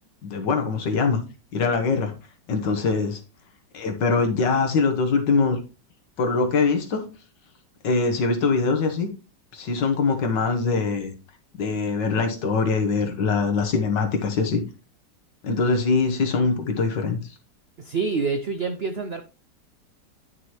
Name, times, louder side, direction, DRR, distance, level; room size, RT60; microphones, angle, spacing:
voice 1, 0.2-1.2 1.5-2.1 2.5-3.2 3.7-5.6 6.2-7.0 7.8-9.1 9.5-11.1 11.6-14.6 15.4-17.2, left 4 dB, 85° left, 5 dB, 1.9 m, -23 dB
voice 2, 17.8-19.2, right 4 dB, 70° right, 7 dB, 0.5 m, -27 dB
9.6 x 6.0 x 3.0 m, 0.31 s
omnidirectional pair, 1.9 m